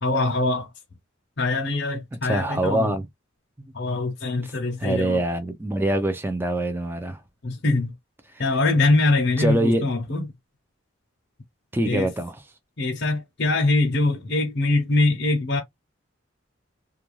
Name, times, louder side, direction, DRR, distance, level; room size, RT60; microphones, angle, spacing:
voice 1, 0.0-0.7 1.4-2.9 3.7-5.2 7.4-7.9 8.4-10.3 11.8-12.1 12.8-15.6, left 2 dB, 55° left, 0.7 m, -23 dB
voice 2, 2.2-3.1 4.8-7.2 8.3-8.4 9.4-9.8 11.7-12.4, right 1 dB, 10° right, 0.4 m, -24 dB
2.5 x 2.2 x 3.0 m
head